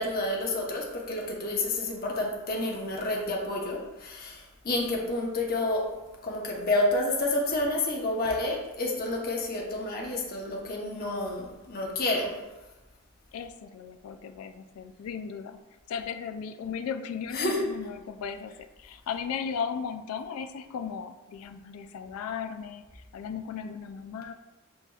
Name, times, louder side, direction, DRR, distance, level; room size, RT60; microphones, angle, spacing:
voice 1, 0.0-5.8 6.2-12.4 17.3-17.6, left 2 dB, 45° left, -1 dB, 0.8 m, -29 dB
voice 2, 13.3-15.6 15.9-24.3, left 6 dB, 85° left, 9 dB, 0.3 m, -36 dB
7.8 x 2.9 x 2.3 m, 1.1 s
head